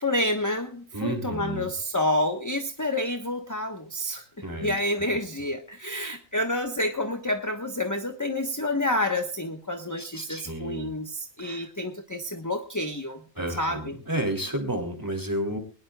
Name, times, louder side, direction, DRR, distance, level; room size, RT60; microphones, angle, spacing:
voice 1, 0.0-4.2 4.6-13.2 13.6-13.9, left 1 dB, 15° left, 5 dB, 1.2 m, -29 dB
voice 2, 0.9-1.7 4.4-4.8 10.0-10.9 11.4-11.7 13.3-15.6, right 1 dB, 15° right, 5 dB, 3.1 m, -31 dB
21.5 x 19.5 x 2.4 m, 0.37 s
omnidirectional pair, 1.3 m